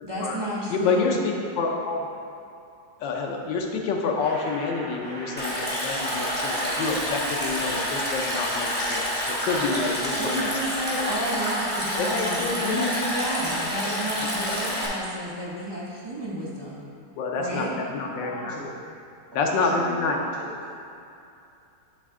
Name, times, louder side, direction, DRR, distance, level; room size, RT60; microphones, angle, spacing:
voice 1, 0.0-1.2 10.2-16.8 17.3-17.7, right 1 dB, 35° right, -7 dB, 0.4 m, -31 dB
voice 2, 0.7-2.1 3.0-10.5 12.0-13.0 14.2-14.3 17.2-18.5 19.3-20.2, left 4 dB, 85° left, 1 dB, 1.4 m, -28 dB
sound 1, 4.2-9.7, right 1 dB, 90° right, 1.9 m, -41 dB
Stream, 5.4-14.9, equal, 5° left, 0.9 m, -28 dB
voice 3, 17.4-18.7 19.3-20.5, equal, 15° right, -8 dB, 1.2 m, -38 dB
9.5 x 3.4 x 3.7 m, 2.6 s
omnidirectional pair, 1.9 m